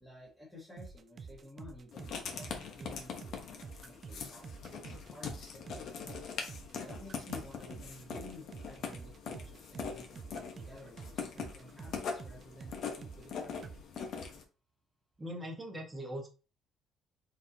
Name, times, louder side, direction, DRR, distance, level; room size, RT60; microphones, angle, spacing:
voice 1, 0.0-5.9 6.8-13.7, left 1 dB, 5° left, -4 dB, 1.4 m, -53 dB
sound 1, 0.8-13.3 13.6-13.8, right 5 dB, 30° right, 0.4 m, -48 dB
Writing, 1.9-14.4, left 6 dB, 55° left, 1.0 m, -42 dB
voice 2, 15.2-16.3, equal, 15° right, 0 dB, 1.2 m, -40 dB
4.3 x 4.0 x 2.8 m, 0.33 s
cardioid pair, 150°, 0 cm